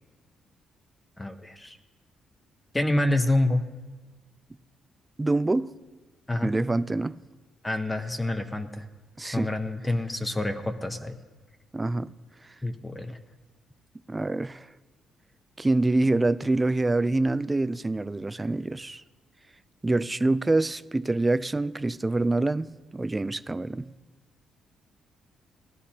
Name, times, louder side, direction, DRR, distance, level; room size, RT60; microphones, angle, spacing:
voice 1, 1.2-1.8 2.7-3.6 6.3-6.5 7.6-8.8 9.3-11.2 12.6-13.2, left 1 dB, 15° left, 0.8 m, -27 dB
voice 2, 5.2-5.7 6.4-7.2 9.2-9.5 11.7-12.1 14.1-14.7 15.6-19.0 19.8-22.7 22.9-23.9, right 2 dB, 20° right, 0.3 m, -25 dB
18.5 x 11.5 x 2.8 m
cardioid pair, 90°, 0 cm